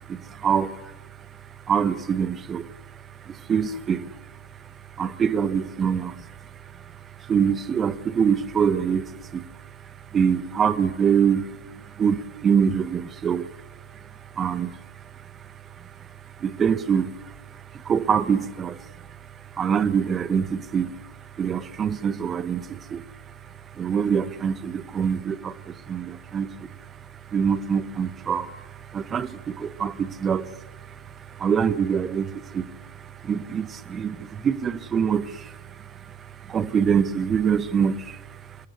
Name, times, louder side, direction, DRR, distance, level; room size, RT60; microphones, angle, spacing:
voice 1, 0.1-0.9 1.7-2.7 3.2-4.1 5.0-6.2 7.2-9.4 10.1-11.5 12.0-13.5 14.4-14.8 16.4-17.3 17.7-18.8 19.6-20.9 21.4-23.0 23.8-26.7 27.3-30.5 30.9-31.0 31.3-32.7 33.0-35.6 36.1-36.2 36.5-38.2, right 7 dB, 20° right, 16 dB, 1.5 m, -24 dB
27.5 x 26.5 x 6.9 m, 1.2 s
figure-of-eight pair, 90°, 0 cm